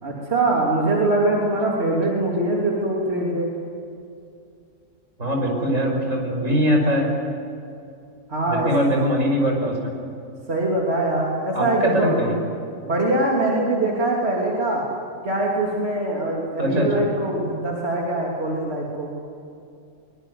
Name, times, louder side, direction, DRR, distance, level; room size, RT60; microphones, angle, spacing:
voice 1, 0.0-3.5 8.3-8.8 10.5-12.1 12.8-14.9 15.2-19.2, right 2 dB, 55° right, -3 dB, 3.6 m, -23 dB
voice 2, 5.2-7.1 8.5-9.9 11.5-12.3 16.6-16.9, equal, 70° right, 1 dB, 6.1 m, -21 dB
24.0 x 22.5 x 9.6 m, 2.5 s
omnidirectional pair, 1.4 m